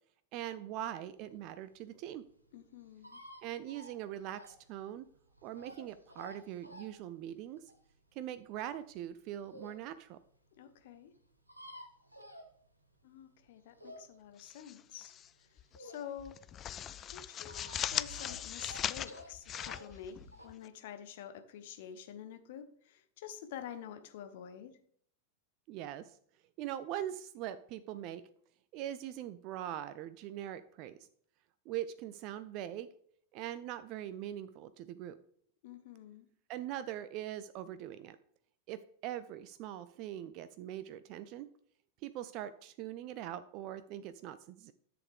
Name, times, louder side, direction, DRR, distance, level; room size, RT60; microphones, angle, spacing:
voice 1, 0.3-2.2 3.4-5.1 5.4-7.7 8.1-10.2 25.7-26.2 26.6-28.2 28.7-31.0 31.7-32.9 33.3-35.2 36.5-38.2 38.7-41.5 42.0-44.7, right 12 dB, 40° right, 13 dB, 0.4 m, -42 dB
sound 1, 1.2-9.8 10.3-10.4 10.6-10.7 10.9-11.0 11.1-13.0 13.4-16.4 16.7-20.5, equal, 90° right, 1.2 m, -52 dB
voice 2, 2.5-3.2 10.6-11.1 13.0-15.1 15.8-16.4 17.0-20.2 20.4-24.8 35.6-36.3, left 9 dB, 55° left, 10 dB, 0.9 m, -48 dB
sound 2, 14.4-15.3 15.6-15.8 16.2-20.7, left 10 dB, 30° left, 0.3 m, -39 dB
10.5 x 6.9 x 3.4 m, 0.63 s
figure-of-eight pair, 90°, 0 cm